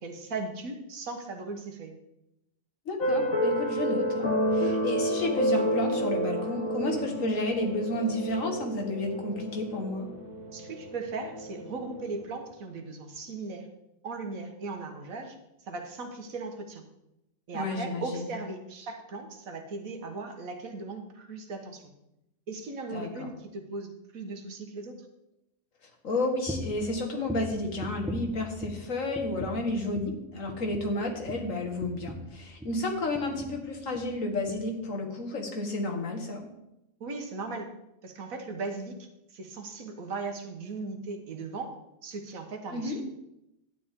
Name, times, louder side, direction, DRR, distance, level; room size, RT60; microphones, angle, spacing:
voice 1, 0.0-2.0 10.5-13.7 14.0-16.8 17.5-21.9 22.5-25.1 37.0-37.8 38.0-41.8 42.0-43.0, right 3 dB, 80° right, 5 dB, 1.7 m, -38 dB
voice 2, 2.9-10.1 17.5-18.3 22.9-23.3 26.0-36.4 42.7-43.0, left 2 dB, 70° left, 3 dB, 1.9 m, -31 dB
sound 1, 3.0-12.2, equal, 90° left, 1.7 m, -30 dB
sound 2, 26.5-26.8 27.2-28.9 29.1-29.7 29.9-30.2 30.5-32.8 33.1-33.6 33.9-34.1 34.5-34.6, equal, 5° right, 1.0 m, -39 dB
11.0 x 9.3 x 3.7 m, 0.88 s
omnidirectional pair, 1.4 m